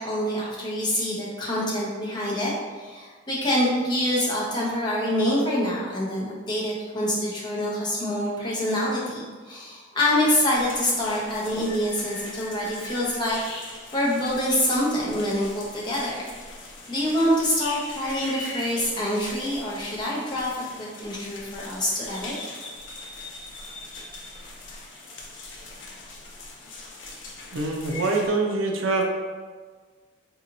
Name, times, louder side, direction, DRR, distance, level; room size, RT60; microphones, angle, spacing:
voice 1, 0.0-13.4 13.9-16.3 16.9-22.3, left 1 dB, 25° left, -5 dB, 0.7 m, -26 dB
sound 1, 10.5-28.3, left 2 dB, 75° left, 0.6 m, -40 dB
voice 2, 27.5-29.1, right 3 dB, 90° right, 2 dB, 0.5 m, -24 dB
4.0 x 2.8 x 2.6 m, 1.5 s
head